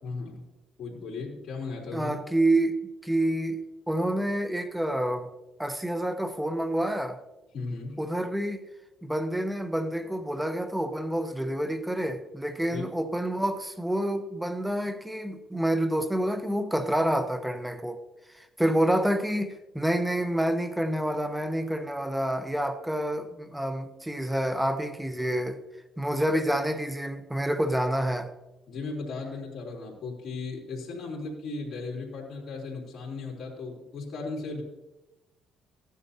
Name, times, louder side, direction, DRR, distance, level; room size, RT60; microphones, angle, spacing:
voice 1, 0.0-0.4 0.8-2.2 7.5-8.0 12.7-12.8 25.2-25.3 26.3-26.4 28.7-34.6, left 3 dB, 50° left, 3.4 m, -36 dB
voice 2, 1.9-2.8 3.0-5.3 5.6-7.2 8.0-8.6 9.0-18.0 18.3-25.6 26.0-28.3, right 1 dB, 5° right, 1.0 m, -28 dB
14.5 x 10.0 x 2.8 m
cardioid pair, 90°, 0 cm